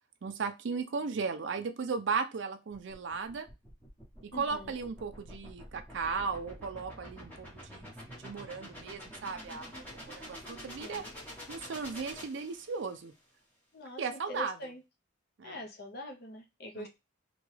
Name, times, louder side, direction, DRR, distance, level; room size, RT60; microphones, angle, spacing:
voice 1, 0.2-3.5 4.2-11.0 11.5-13.1 14.0-14.7 15.4-15.6 16.7-16.9, right 5 dB, 60° right, 7 dB, 0.4 m, -36 dB
sound 1, 2.7-13.0, equal, 10° left, 1.0 m, -48 dB
voice 2, 4.3-4.7 10.8-11.1 13.7-14.8 15.4-16.9, left 1 dB, 50° left, 2 dB, 0.6 m, -44 dB
2.9 x 2.2 x 3.1 m, 0.24 s
head